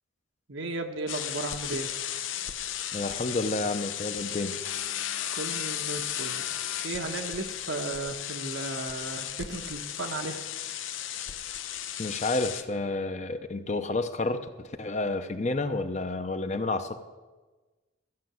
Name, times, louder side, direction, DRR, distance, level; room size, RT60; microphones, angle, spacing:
voice 1, 0.5-1.9 5.3-6.5 6.8-10.4, right 2 dB, 85° right, 5 dB, 1.2 m, -35 dB
sound 1, 1.1-12.6, left 10 dB, 80° left, 0.7 m, -35 dB
voice 2, 2.9-4.6 12.0-17.0, left 2 dB, 35° left, 9 dB, 0.7 m, -30 dB
14.5 x 5.8 x 7.8 m, 1.2 s
head